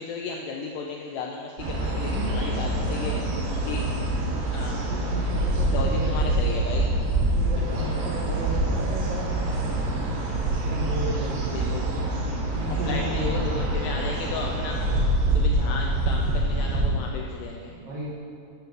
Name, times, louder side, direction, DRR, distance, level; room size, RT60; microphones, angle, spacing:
voice 1, 0.0-3.1 3.7-3.8 4.5-4.9 5.7-6.9 7.7-8.0 11.5-11.8 12.8-14.8 15.3-17.7, left 4 dB, 85° left, 0 dB, 2.4 m, -34 dB
sound 1, 1.6-16.9, right 1 dB, 75° right, 3.2 m, -25 dB
voice 2, 2.1-4.4 4.9-6.4 7.3-10.2 10.6-11.8 12.5-13.9 15.5-16.0 17.6-18.1, right 2 dB, 90° right, -7 dB, 2.0 m, -35 dB
9.5 x 3.3 x 6.4 m, 2.5 s
omnidirectional pair, 5.2 m